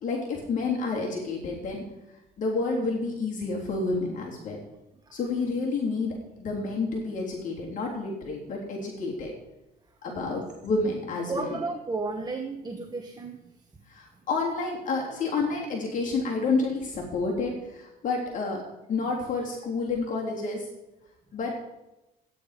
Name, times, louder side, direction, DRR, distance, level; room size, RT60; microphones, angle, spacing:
voice 1, 0.0-1.8 2.4-4.6 5.1-9.3 10.0-11.6 13.9-18.6 18.9-20.7 21.3-21.5, left 3 dB, 50° left, -2 dB, 3.5 m, -29 dB
voice 2, 10.1-10.4 11.3-13.6, right 3 dB, 25° right, 4 dB, 1.2 m, -34 dB
13.0 x 9.8 x 5.1 m, 0.94 s
cardioid pair, 110°, 17 cm